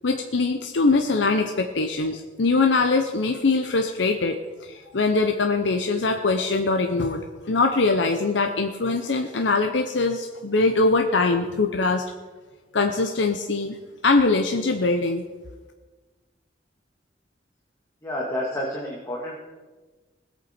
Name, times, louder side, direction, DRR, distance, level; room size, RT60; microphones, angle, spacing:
voice 1, 0.0-12.0 12.7-13.8 14.0-15.2, left 3 dB, 75° left, 5 dB, 0.8 m, -22 dB
voice 2, 18.0-19.4, left 1 dB, 15° left, -4 dB, 1.9 m, -30 dB
20.0 x 8.2 x 4.4 m, 1.3 s
head